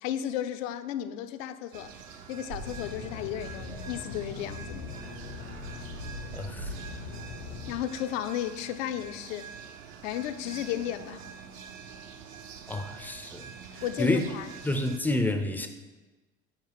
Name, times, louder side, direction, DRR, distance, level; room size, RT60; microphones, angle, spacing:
voice 1, 0.0-1.9 2.3-4.9 7.7-9.5 10.0-11.2 13.8-14.5, left 11 dB, 65° left, 0.6 m, -34 dB
sound 1, 1.7-15.0, right 6 dB, 60° right, 0.8 m, -46 dB
sound 2, 2.5-7.7, right 2 dB, 80° right, 1.8 m, -45 dB
sound 3, 2.7-7.8, left 5 dB, 80° left, 1.1 m, -42 dB
voice 2, 6.3-6.7 12.7-13.5 14.0-14.2 14.6-15.7, left 2 dB, 5° left, 0.5 m, -28 dB
7.4 x 4.6 x 4.7 m
hypercardioid pair, 75°, 43 cm